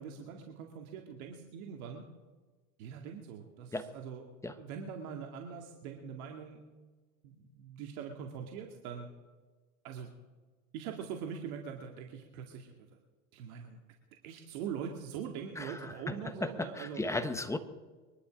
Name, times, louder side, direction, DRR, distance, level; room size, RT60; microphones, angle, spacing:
voice 1, 0.0-2.1 2.8-6.6 7.2-9.1 9.8-10.1 10.7-12.9 13.3-13.8 14.2-17.0, right 7 dB, 65° right, 2 dB, 2.3 m, -43 dB
voice 2, 15.6-17.6, left 2 dB, 5° left, 9 dB, 1.2 m, -36 dB
23.0 x 11.5 x 5.2 m, 1.3 s
hypercardioid pair, 115°, 45 cm